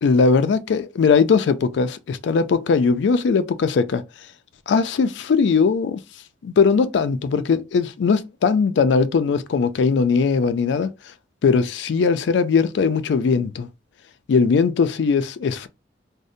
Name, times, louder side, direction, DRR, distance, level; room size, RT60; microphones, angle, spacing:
voice 1, 0.0-4.0 4.7-6.0 6.4-10.9 11.4-13.7 14.3-15.7, left 5 dB, 65° left, 0.3 m, -19 dB
2.6 x 2.0 x 2.5 m
head